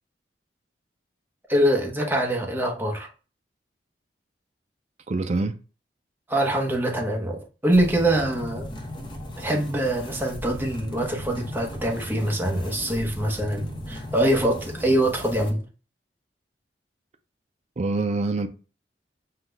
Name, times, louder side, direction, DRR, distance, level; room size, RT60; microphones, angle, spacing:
voice 1, 1.5-3.1 6.3-8.7 9.4-15.6, right 1 dB, 10° right, 1.0 m, -24 dB
voice 2, 5.1-5.6 17.8-18.5, right 3 dB, 40° right, 0.4 m, -25 dB
sound 1, 7.7-15.5, equal, 25° left, 0.9 m, -37 dB
5.7 x 2.3 x 3.3 m
head